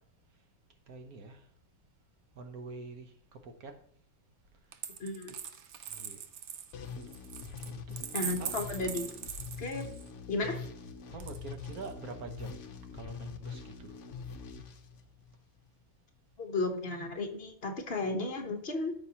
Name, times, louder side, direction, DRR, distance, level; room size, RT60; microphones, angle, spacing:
voice 1, 0.9-1.4 2.4-3.7 5.9-6.2 7.6-8.0 8.4-8.7 11.1-12.6 13.0-13.9, right 4 dB, 85° right, 6 dB, 1.5 m, -45 dB
Coin (dropping), 4.7-10.1 11.2-11.9, right 8 dB, 60° right, 0.9 m, -41 dB
voice 2, 5.0-5.3 8.1-9.1 9.6-9.8 10.3-10.6 16.4-18.9, left 2 dB, 45° left, 3 dB, 1.3 m, -34 dB
sound 1, 6.7-15.6, left 5 dB, 60° left, 1.1 m, -44 dB
13.0 x 5.4 x 2.9 m, 0.64 s
omnidirectional pair, 1.5 m